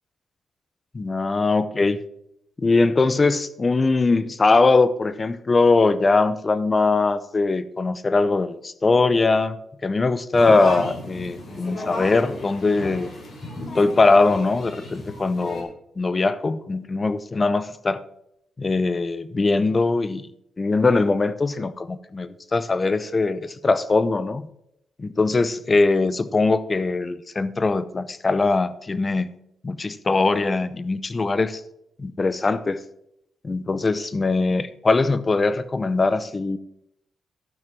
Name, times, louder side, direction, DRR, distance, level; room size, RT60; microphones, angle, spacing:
voice 1, 0.9-2.0 2.6-9.6 9.8-13.1 13.7-18.0 18.6-20.2 20.6-24.4 25.0-29.3 29.6-31.6 32.0-32.8 33.4-36.6, left 3 dB, 30° left, 15 dB, 0.7 m, -21 dB
sound 1, 10.3-15.6, left 2 dB, 50° left, 3.3 m, -34 dB
12.0 x 6.0 x 6.0 m, 0.77 s
cardioid pair, 85°, 0 cm